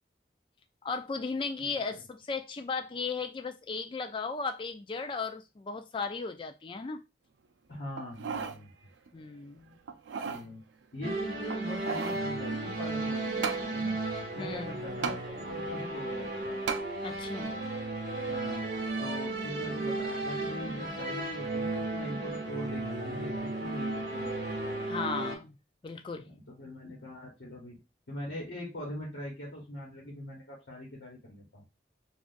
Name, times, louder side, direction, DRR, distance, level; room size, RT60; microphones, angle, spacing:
voice 1, 0.8-7.0 9.1-9.8 14.4-14.7 17.0-17.5 24.9-25.6 25.8-26.3, left 4 dB, 25° left, 0.3 m, -36 dB
voice 2, 1.6-2.0 7.7-8.7 10.2-10.6 10.9-14.0 14.3-16.6 18.2-18.7 19.0-24.6 26.2-27.8 28.1-31.6, left 1 dB, 85° left, 1.1 m, -42 dB
sound 1, 8.0-8.6 9.1-9.2 9.9-10.5 11.5-12.2 13.4-13.7 15.0-15.2 16.7-16.9 17.5-17.6, right 6 dB, 85° right, 0.4 m, -34 dB
sound 2, 11.0-25.4, right 2 dB, 55° right, 0.9 m, -34 dB
3.8 x 2.4 x 2.5 m
head